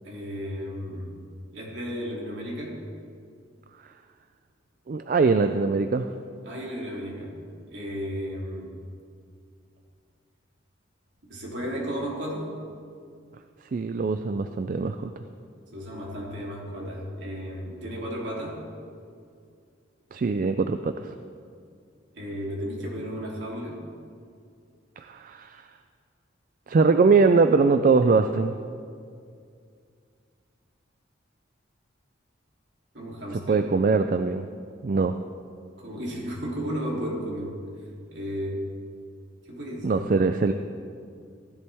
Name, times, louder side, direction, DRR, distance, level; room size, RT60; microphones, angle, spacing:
voice 1, 0.0-1.1 1.5-2.8 6.4-7.3 7.7-8.7 11.3-12.5 15.7-18.6 22.1-23.8 32.9-33.6 35.8-37.6 38.1-38.6 39.5-40.1, equal, 65° right, -3 dB, 2.9 m, -33 dB
voice 2, 4.9-6.1 13.7-15.1 20.1-21.1 25.0-25.6 26.7-28.5 33.5-34.4 34.8-35.1 39.8-40.5, right 4 dB, 45° right, 9 dB, 0.3 m, -22 dB
16.0 x 11.0 x 3.5 m, 2.3 s
head